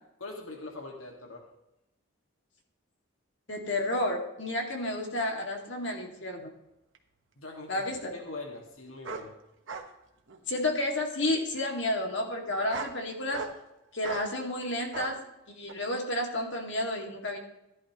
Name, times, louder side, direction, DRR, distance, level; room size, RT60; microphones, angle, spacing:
voice 1, 0.2-1.5 7.4-9.4, left 2 dB, 80° left, 1 dB, 1.9 m, -42 dB
voice 2, 3.5-6.5 7.7-8.1 10.5-13.4 13.9-15.2 15.5-17.4, left 1 dB, 60° left, 2 dB, 2.2 m, -31 dB
sound 1, 6.9-7.0 9.0-9.3 9.7-9.9 10.3-10.8 11.5-11.7 12.5-13.0 13.3-13.6 14.0-14.3 14.9-15.1 15.7-15.8, right 4 dB, 65° right, 1.2 m, -38 dB
15.0 x 11.0 x 3.0 m, 0.89 s
head